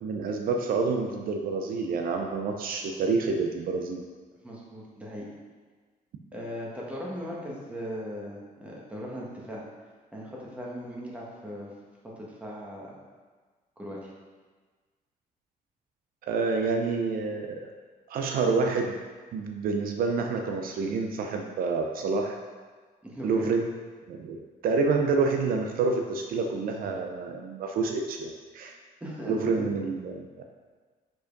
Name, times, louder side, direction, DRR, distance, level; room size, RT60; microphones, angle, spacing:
voice 1, 0.0-4.0 16.3-17.7 18.1-19.0 19.3-22.3 23.2-23.7 24.1-28.7 29.3-30.3, right 4 dB, 70° right, 3 dB, 0.6 m, -28 dB
voice 2, 4.4-5.2 6.3-9.6 10.1-11.7 12.2-12.9 13.8-14.1 23.0-23.5 29.0-29.7, equal, 10° right, -5 dB, 1.4 m, -38 dB
5.2 x 4.7 x 5.2 m, 1.4 s
cardioid pair, 150°, 16 cm